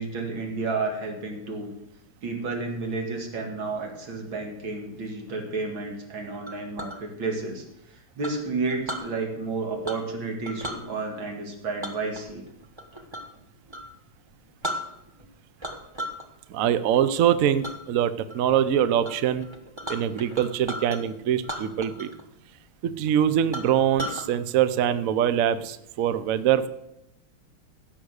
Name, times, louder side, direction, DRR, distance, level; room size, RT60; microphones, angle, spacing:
voice 1, 0.0-1.7 2.2-7.6 8.2-12.4, right 3 dB, 65° right, 2 dB, 3.0 m, -31 dB
Chink clink, 6.5-7.0 8.2-9.1 9.8-10.2 10.4-10.8 11.8-13.3 13.7-13.9 14.3-14.4 14.6-15.3 15.6-16.2 16.6-17.0 17.6-17.8 18.3-18.6 19.0-19.1 19.4-21.0 21.4-22.2 22.5-22.6 23.1-23.2 23.5-24.3, equal, 15° right, 1.1 m, -35 dB
voice 2, 16.5-19.5 19.9-22.1 22.8-26.7, right 10 dB, 80° right, 14 dB, 0.7 m, -23 dB
16.0 x 6.3 x 6.4 m, 0.85 s
omnidirectional pair, 2.3 m